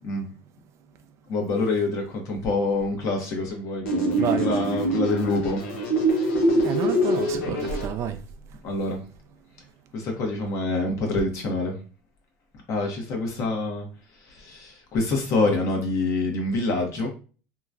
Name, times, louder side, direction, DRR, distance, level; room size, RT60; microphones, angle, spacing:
voice 1, 1.3-3.9 4.4-5.6 8.6-9.0 9.9-11.8 12.7-13.9 14.2-17.1, left 3 dB, 50° left, 1.0 m, -26 dB
sound 1, 3.8-7.8, right 1 dB, 85° left, 1.0 m, -24 dB
voice 2, 4.2-4.7 6.6-8.2, right 8 dB, 50° right, 0.4 m, -29 dB
2.9 x 2.3 x 2.5 m
supercardioid pair, 105°, 7 cm